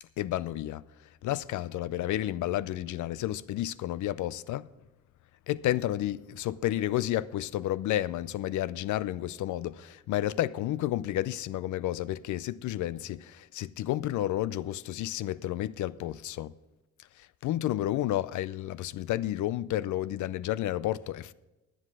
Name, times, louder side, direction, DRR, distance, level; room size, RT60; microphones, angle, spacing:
voice 1, 0.0-4.7 5.5-16.5 17.0-21.3, left 13 dB, 75° left, 0.5 m, -31 dB
11.0 x 9.8 x 4.7 m
cardioid pair, 90°, 30 cm